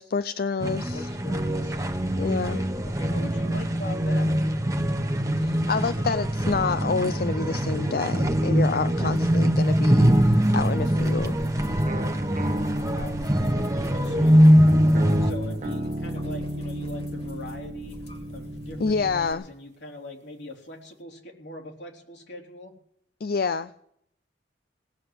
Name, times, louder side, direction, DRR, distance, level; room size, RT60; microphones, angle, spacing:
voice 1, 0.0-1.1 2.2-2.6 5.3-11.4 18.8-19.5 23.2-23.7, left 4 dB, 55° left, 13 dB, 0.5 m, -28 dB
sound 1, 0.6-15.3, equal, 20° right, 1.1 m, -22 dB
voice 2, 0.9-1.9 2.2-4.3 9.1-9.4 12.9-14.7 15.2-18.1 18.3-22.7, left 1 dB, 80° left, 1 dB, 3.6 m, -42 dB
sound 2, 9.2-19.3, equal, 35° left, 2.1 m, -43 dB
sound 3, 11.9-19.3, equal, 40° right, 1.0 m, -33 dB
18.5 x 7.6 x 9.7 m, 0.69 s
head